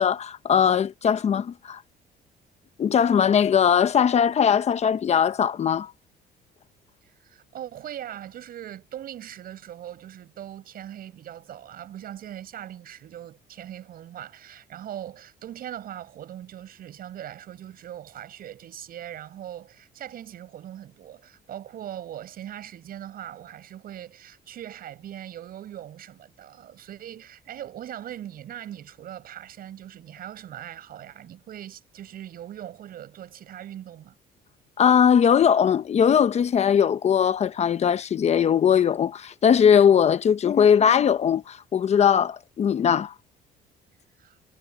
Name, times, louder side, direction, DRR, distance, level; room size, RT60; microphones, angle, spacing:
voice 1, 0.0-1.8 2.8-5.9 34.8-43.1, left 8 dB, 40° left, 0.8 m, -20 dB
voice 2, 7.1-34.1 44.2-44.4, right 11 dB, 60° right, 7.2 m, -40 dB
cardioid pair, 110°, 17 cm